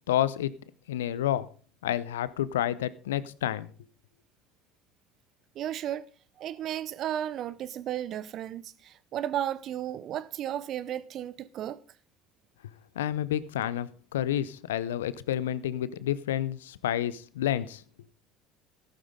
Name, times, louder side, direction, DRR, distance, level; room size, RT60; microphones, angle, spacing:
voice 1, 0.1-0.5 0.9-1.5 1.8-3.7 13.0-17.8, left 11 dB, 80° left, 0.6 m, -29 dB
voice 2, 5.5-6.1 6.4-11.8, right 11 dB, 55° right, 0.8 m, -34 dB
14.0 x 12.0 x 3.7 m
hypercardioid pair, 65°, 0 cm